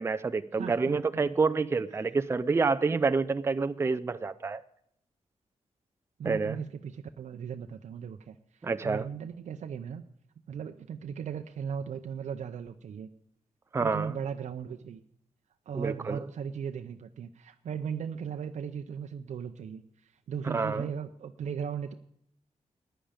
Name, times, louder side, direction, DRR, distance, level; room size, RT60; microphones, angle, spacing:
voice 1, 0.0-4.6 6.2-6.6 8.6-9.1 13.7-14.1 15.7-16.2 20.5-20.9, right 4 dB, 20° right, 12 dB, 0.4 m, -28 dB
voice 2, 0.5-1.2 6.2-10.0 10.5-13.1 13.8-15.0 15.7-21.9, right 7 dB, 80° right, 7 dB, 0.6 m, -37 dB
14.5 x 10.0 x 5.1 m, 0.72 s
wide cardioid pair, 135°, 12 cm